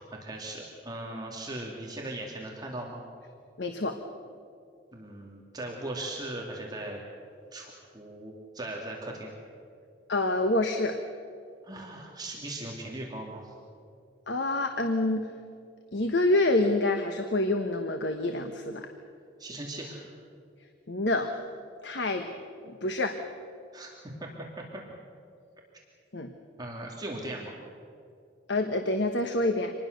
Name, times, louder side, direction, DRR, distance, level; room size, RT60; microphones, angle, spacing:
voice 1, 0.2-3.0 4.9-7.0 7.5-9.3 11.6-13.5 19.4-20.1 23.7-23.9 24.2-24.3 24.6-24.8 26.6-27.5, right 1 dB, 20° right, -1 dB, 2.6 m, -38 dB
voice 2, 3.6-4.0 10.1-11.0 14.3-15.3 15.9-18.9 20.9-21.4 21.8-22.3 22.7-23.2 26.1-26.3 28.5-29.7, left 2 dB, 70° left, 6 dB, 1.3 m, -27 dB
26.0 x 20.0 x 6.7 m, 2.4 s
head